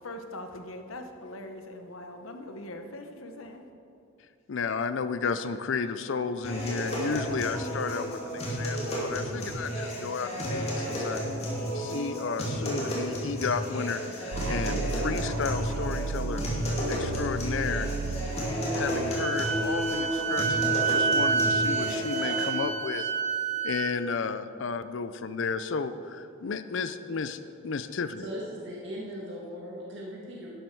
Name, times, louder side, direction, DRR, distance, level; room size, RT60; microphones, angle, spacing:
voice 1, 0.0-3.6, left 1 dB, 85° left, 6 dB, 1.1 m, -41 dB
voice 2, 4.5-11.2 11.7-16.4 16.9-17.9 18.7-23.1 23.6-28.2, left 5 dB, 65° left, 12 dB, 0.5 m, -33 dB
sound 1, 6.4-22.5, equal, 30° left, 2.6 m, -32 dB
sound 2, 14.3-20.2, right 5 dB, 85° right, 0.4 m, -35 dB
Wind instrument woodwind instrument, 19.1-23.9, right 5 dB, 35° right, 0.7 m, -28 dB
voice 3, 28.2-30.5, equal, 60° right, -4 dB, 1.9 m, -39 dB
12.0 x 11.5 x 4.7 m, 2.5 s
head